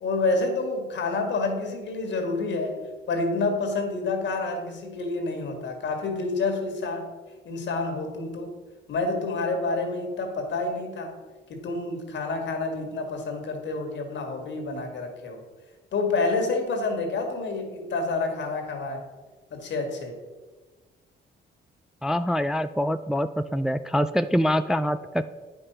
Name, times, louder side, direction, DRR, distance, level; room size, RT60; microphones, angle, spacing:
voice 1, 0.0-2.8 3.1-7.1 7.5-8.5 8.9-11.2 11.5-15.4 15.9-19.0 19.5-20.2, left 3 dB, 65° left, 4 dB, 1.9 m, -28 dB
voice 2, 22.0-25.2, equal, 5° right, 11 dB, 0.3 m, -25 dB
9.4 x 5.4 x 5.6 m, 1.3 s
cardioid pair, 90°, 20 cm